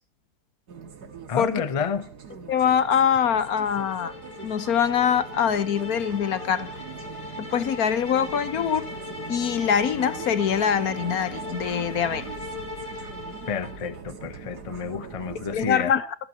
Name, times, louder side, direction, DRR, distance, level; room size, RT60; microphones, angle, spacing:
sound 1, 0.7-15.7, right 5 dB, 90° right, 2.2 m, -41 dB
voice 1, 1.3-2.1 13.5-15.9, left 6 dB, 30° left, 0.7 m, -30 dB
voice 2, 2.5-4.1 4.4-6.7 7.4-8.9 9.3-12.3 15.5-16.1, left 8 dB, 70° left, 1.5 m, -23 dB
sound 2, 2.6-14.0, left 3 dB, 90° left, 3.8 m, -39 dB
24.5 x 14.5 x 2.9 m
omnidirectional pair, 1.7 m